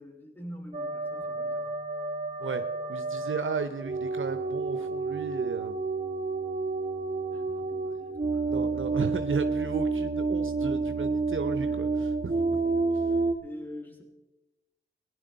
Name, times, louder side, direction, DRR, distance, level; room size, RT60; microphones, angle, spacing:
voice 1, 0.0-1.7 7.3-8.9 11.6-11.8 12.5-12.9 13.3-14.0, equal, 10° left, 2 dB, 2.8 m, -46 dB
sound 1, 0.7-13.3, right 3 dB, 40° right, 1.2 m, -30 dB
voice 2, 2.9-5.8 8.5-12.4, right 5 dB, 80° right, 8 dB, 0.7 m, -34 dB
18.0 x 10.5 x 4.0 m, 1.1 s
wide cardioid pair, 55°, 20 cm